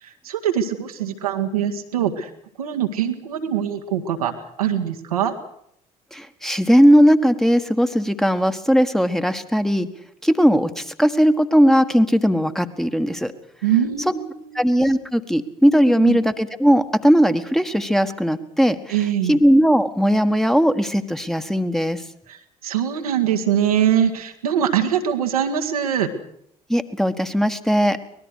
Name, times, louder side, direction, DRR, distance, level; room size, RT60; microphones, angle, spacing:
voice 1, 0.0-2.3 2.6-4.3 4.6-5.3 13.6-14.7 16.0-16.2 18.9-19.4 22.3-26.1, right 9 dB, 75° right, 5 dB, 1.8 m, -23 dB
voice 2, 6.1-9.9 10.2-13.3 14.5-18.8 19.3-22.0 26.7-28.0, equal, ahead, 9 dB, 1.6 m, -18 dB
24.5 x 19.5 x 6.5 m, 0.72 s
figure-of-eight pair, 55°, 19 cm